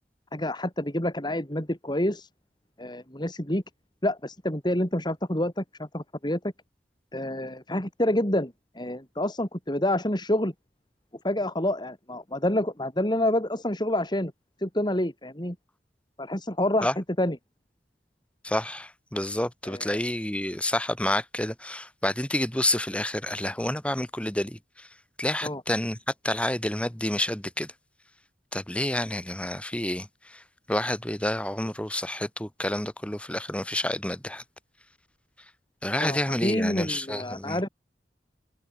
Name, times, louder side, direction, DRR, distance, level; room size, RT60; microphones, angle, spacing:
voice 1, 0.3-2.3 2.8-3.6 4.0-6.5 7.1-10.5 11.2-14.3 14.6-15.6 16.2-17.4 19.7-20.0 25.4-25.6 36.0-37.7, left 1 dB, 25° left, 4.0 m, -28 dB
voice 2, 18.4-24.9 25.2-26.0 26.2-27.7 28.5-34.4 35.8-37.6, left 1 dB, 5° left, 1.8 m, -29 dB
head